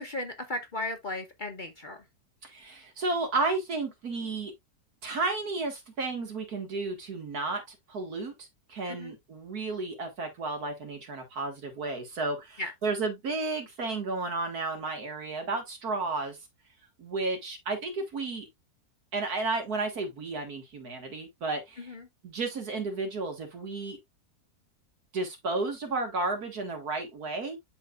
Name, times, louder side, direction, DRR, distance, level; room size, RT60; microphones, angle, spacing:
voice 1, 0.0-2.0 8.9-9.2 12.6-12.7 21.8-22.1, left 2 dB, 40° left, 0.8 m, -36 dB
voice 2, 2.4-4.5 5.0-16.4 17.0-18.5 19.1-21.9 22.2-24.0 25.1-27.6, right 3 dB, 75° right, 2.2 m, -32 dB
11.5 x 3.9 x 2.4 m
omnidirectional pair, 1.6 m